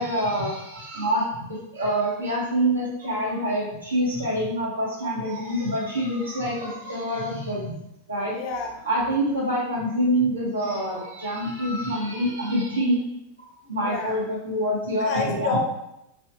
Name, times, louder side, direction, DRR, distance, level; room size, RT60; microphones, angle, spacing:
voice 1, 0.0-7.7 8.1-8.4 8.8-13.0 13.7-15.6, equal, 75° right, -6 dB, 1.1 m, -26 dB
voice 2, 8.3-8.7 13.8-14.2 15.0-15.6, left 4 dB, 40° left, 2 dB, 0.5 m, -29 dB
3.1 x 2.8 x 2.2 m, 0.84 s
figure-of-eight pair, 90°, 0 cm